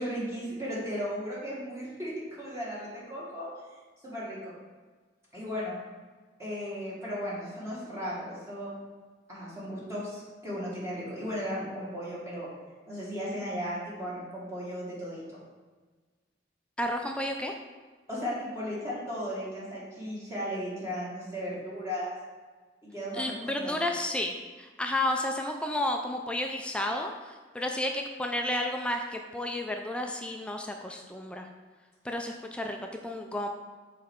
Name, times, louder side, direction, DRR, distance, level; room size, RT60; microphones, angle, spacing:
voice 1, 0.0-3.5 4.0-4.5 5.3-5.8 6.4-8.7 9.3-12.5 12.9-15.4 18.1-22.1 22.8-23.7, equal, 15° right, -7 dB, 1.6 m, -36 dB
voice 2, 16.8-17.5 23.2-31.5 32.0-33.5, left 1 dB, 5° left, 3 dB, 0.4 m, -32 dB
6.8 x 4.2 x 3.6 m, 1.4 s
head